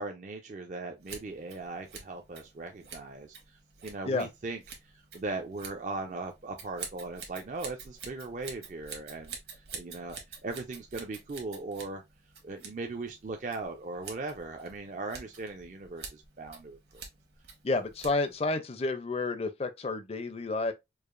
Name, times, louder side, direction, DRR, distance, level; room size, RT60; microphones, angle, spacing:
voice 1, 0.0-3.4 3.8-4.6 4.8-12.0 12.4-17.0, right 3 dB, 45° right, 0.4 m, -39 dB
Scissors, 1.0-18.5, right 6 dB, 65° right, 1.2 m, -48 dB
voice 2, 17.6-20.7, left 3 dB, 35° left, 0.5 m, -30 dB
4.7 x 2.5 x 2.4 m
head